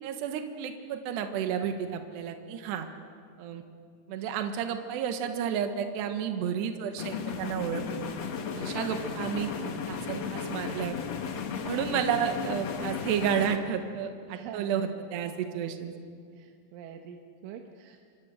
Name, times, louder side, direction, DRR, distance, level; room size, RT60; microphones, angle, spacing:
voice 1, 0.0-2.9 3.4-3.6 4.1-8.1 8.6-11.0 11.6-15.9, right 8 dB, 70° right, 6 dB, 3.3 m, -31 dB
sound 1, 7.0-13.6, left 6 dB, 75° left, 1.5 m, -35 dB
voice 2, 11.6-11.9 14.3-15.2 16.4-18.1, right 8 dB, 85° right, 4 dB, 3.6 m, -45 dB
26.5 x 24.5 x 6.5 m, 2.3 s
omnidirectional pair, 5.4 m